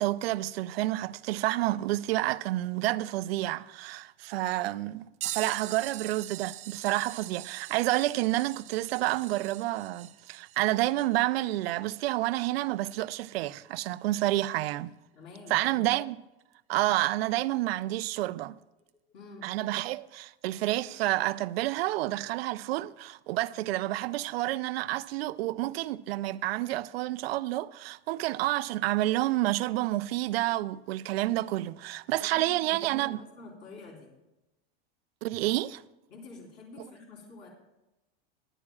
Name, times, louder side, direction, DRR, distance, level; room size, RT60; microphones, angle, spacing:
voice 1, 0.0-14.9 15.5-16.2 16.7-18.6 19.4-33.2 35.2-35.8 36.8-36.9, right 16 dB, 85° right, 0.5 m, -29 dB
sound 1, 5.2-13.4 14.1-14.3 16.5-16.6 17.7-17.8 18.9-19.0, right 14 dB, 25° right, 0.3 m, -43 dB
voice 2, 15.1-15.6 19.1-19.5 32.2-34.1 36.1-37.5, left 3 dB, 40° left, 3.8 m, -48 dB
21.5 x 11.0 x 2.4 m
supercardioid pair, 160°, 30 cm